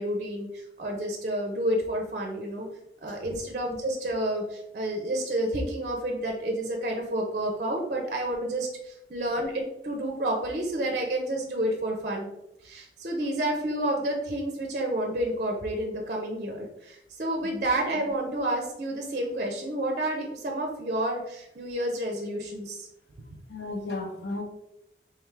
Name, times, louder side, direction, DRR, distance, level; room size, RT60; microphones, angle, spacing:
voice 1, 0.0-2.7 3.0-12.3 12.6-22.9 23.3-23.4, right 1 dB, 45° right, 1 dB, 0.5 m, -30 dB
voice 2, 23.5-24.4, left 2 dB, 80° left, 4 dB, 0.7 m, -34 dB
3.5 x 3.3 x 3.2 m, 0.87 s
head